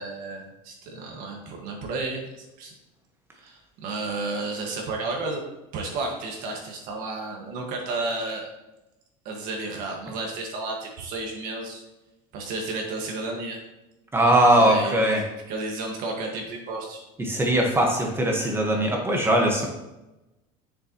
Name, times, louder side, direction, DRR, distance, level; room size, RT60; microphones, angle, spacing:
voice 1, 0.0-2.7 3.4-5.4 5.7-8.5 9.2-11.8 12.3-13.6 14.2-17.0, right 3 dB, 60° right, 1 dB, 1.7 m, -32 dB
voice 2, 14.1-15.2 17.2-19.7, right 1 dB, 15° right, 1 dB, 1.3 m, -20 dB
6.7 x 6.7 x 3.0 m, 0.97 s
supercardioid pair, 125°, 16 cm